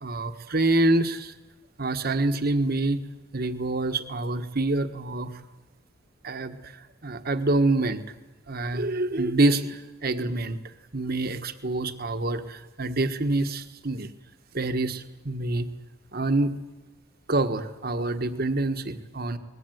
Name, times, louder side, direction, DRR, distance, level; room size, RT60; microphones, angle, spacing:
voice 1, 0.0-1.3 1.8-3.0 3.3-5.3 6.2-6.7 7.0-8.0 8.5-10.6 10.9-14.1 14.5-15.7 16.1-16.5 17.3-19.4, right 2 dB, 50° right, 8 dB, 1.5 m, -26 dB
22.0 x 20.0 x 9.3 m, 1.1 s
head